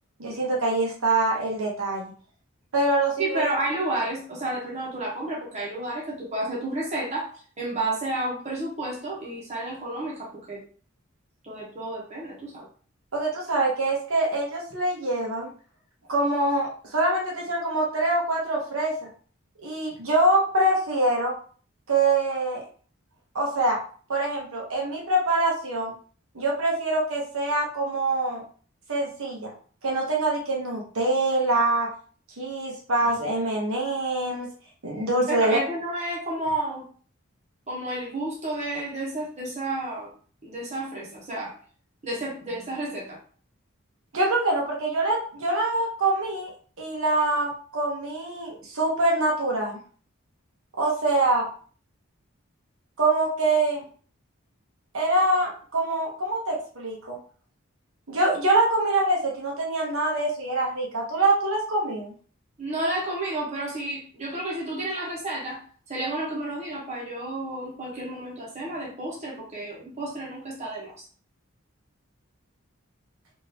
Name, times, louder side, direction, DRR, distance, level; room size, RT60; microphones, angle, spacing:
voice 1, 0.2-2.0 2.7-3.5 13.1-15.5 16.1-19.1 19.6-21.3 21.9-22.6 23.3-23.8 24.1-25.9 26.3-28.4 28.9-29.5 29.8-31.9 32.4-34.5 34.8-35.6 44.1-46.5 46.8-49.8 50.8-51.5 53.0-53.9 54.9-57.2 58.1-62.1, right 2 dB, 80° right, -2 dB, 1.0 m, -24 dB
voice 2, 3.2-7.3 7.6-10.6 11.4-12.7 35.3-36.8 37.7-40.1 40.4-41.5 42.0-43.2 62.6-65.6 65.9-71.0, right 1 dB, 30° right, -5 dB, 1.0 m, -31 dB
3.6 x 2.7 x 2.8 m, 0.43 s
head